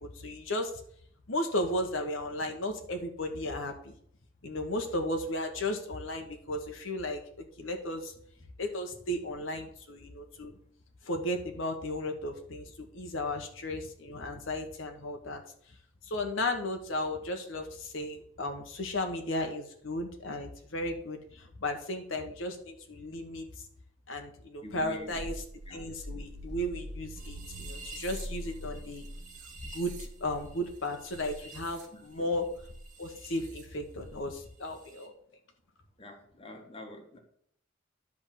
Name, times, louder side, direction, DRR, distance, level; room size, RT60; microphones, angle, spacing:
voice 1, 0.0-0.8 1.3-3.9 4.4-8.1 8.6-10.6 11.0-15.4 16.0-23.5 24.1-25.4 25.7-29.1 29.7-32.5 33.0-35.1, left 1 dB, 75° left, 4 dB, 1.2 m, -35 dB
voice 2, 24.6-25.2 25.7-25.8 31.9-32.3 36.0-37.2, equal, 25° left, 3 dB, 1.3 m, -45 dB
sound 1, 24.8-30.6 31.1-31.4 32.6-32.9 34.0-34.5, equal, 55° right, 0.7 m, -43 dB
sound 2, 27.1-33.7 33.9-35.1, right 4 dB, 40° right, 1.5 m, -50 dB
10.5 x 3.6 x 7.3 m, 0.65 s
head